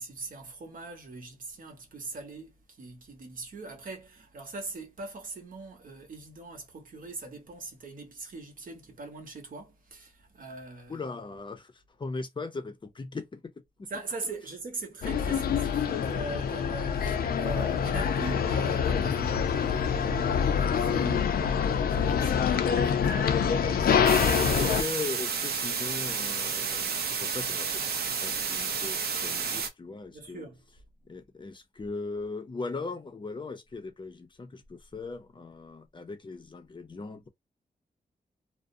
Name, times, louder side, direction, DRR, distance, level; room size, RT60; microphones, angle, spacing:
voice 1, 0.0-11.0 13.9-24.1 30.1-30.6, right 3 dB, 65° right, 0.9 m, -42 dB
voice 2, 10.9-13.5 13.8-13.9 24.2-27.8 28.2-30.5 31.0-37.3, left 3 dB, 30° left, 0.5 m, -39 dB
sound 1, 15.0-24.8, left 7 dB, 80° left, 0.4 m, -26 dB
sound 2, 24.1-29.7, right 6 dB, 90° right, 0.5 m, -31 dB
2.4 x 2.0 x 2.5 m
wide cardioid pair, 105°, 16 cm